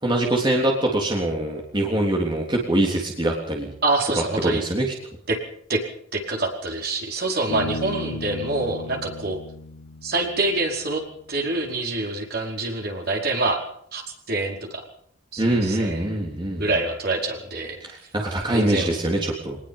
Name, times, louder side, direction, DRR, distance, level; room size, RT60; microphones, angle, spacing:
voice 1, 0.0-3.7 4.4-4.9 15.4-16.7 17.8-19.6, right 1 dB, 25° right, -1 dB, 3.5 m, -23 dB
voice 2, 3.8-4.6 5.3-5.4 5.7-5.8 6.1-9.4 10.0-11.0 11.3-13.6 13.9-14.0 14.3-14.8 15.3-16.2 16.5-17.8 18.5-18.9, right 2 dB, 50° right, 1 dB, 5.0 m, -26 dB
Bass guitar, 7.5-11.0, left 2 dB, 65° left, 5.2 m, -35 dB
24.0 x 20.0 x 5.7 m, 0.66 s
head